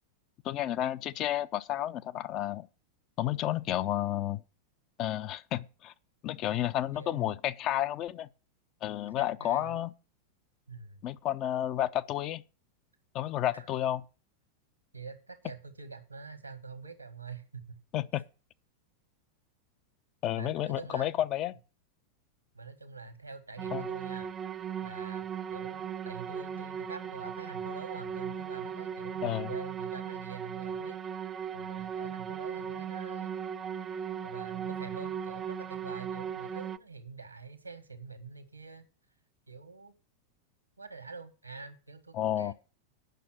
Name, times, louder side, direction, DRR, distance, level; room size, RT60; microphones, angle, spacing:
voice 1, 0.4-2.7 3.2-4.4 5.0-5.9 6.2-8.3 8.8-9.9 11.0-12.4 13.1-14.0 17.9-18.2 20.2-21.5 23.7-23.8 29.2-29.5 42.1-42.5, left 12 dB, 35° left, 0.6 m, -31 dB
voice 2, 6.9-7.3 9.2-9.8 10.7-11.1 13.5-13.7 14.9-17.8 20.3-21.1 22.5-24.3 24.8-31.0 31.5-33.3 34.2-38.9 39.5-39.9 40.8-42.5, right 4 dB, 85° right, 1.6 m, -46 dB
sound 1, 23.6-36.8, right 8 dB, 25° right, 0.5 m, -37 dB
9.2 x 6.0 x 7.6 m
figure-of-eight pair, 90°, 0 cm